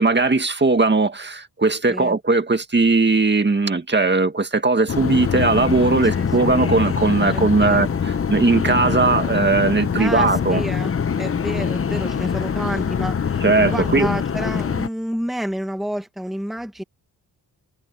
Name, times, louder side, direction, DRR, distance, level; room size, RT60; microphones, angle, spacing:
voice 1, 0.0-10.6 13.4-14.1, right 3 dB, 30° right, 1.9 m, -18 dB
sound 1, 4.9-14.9, left 7 dB, 35° left, 0.8 m, -24 dB
voice 2, 6.2-6.6 7.3-7.9 10.0-10.9 11.2-16.8, equal, ahead, 1.5 m, -29 dB
wide cardioid pair, 115°, 38 cm